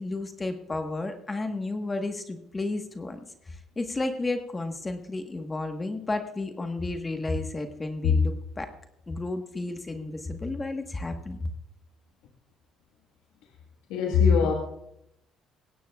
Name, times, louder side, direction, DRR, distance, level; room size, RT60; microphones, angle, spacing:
voice 1, 0.0-8.7 9.1-11.5, left 2 dB, 25° left, 6 dB, 1.3 m, -32 dB
voice 2, 13.9-14.5, left 6 dB, 85° left, 1 dB, 1.6 m, -20 dB
20.0 x 16.5 x 2.4 m, 0.80 s
supercardioid pair, 80°, 0 cm